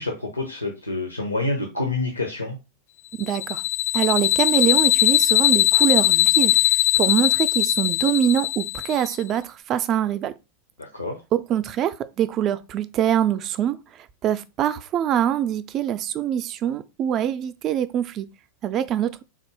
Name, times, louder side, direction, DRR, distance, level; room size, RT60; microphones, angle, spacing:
voice 1, 0.0-2.6 10.8-11.2, left 2 dB, 80° left, 0.6 m, -27 dB
sound 1, 3.2-9.1, left 16 dB, 45° left, 0.3 m, -20 dB
voice 2, 3.2-3.6 3.9-6.6 7.0-10.3 11.3-13.8 14.2-18.3 18.6-19.1, right 10 dB, 35° right, 0.4 m, -24 dB
3.6 x 2.6 x 4.6 m
figure-of-eight pair, 90°, 0 cm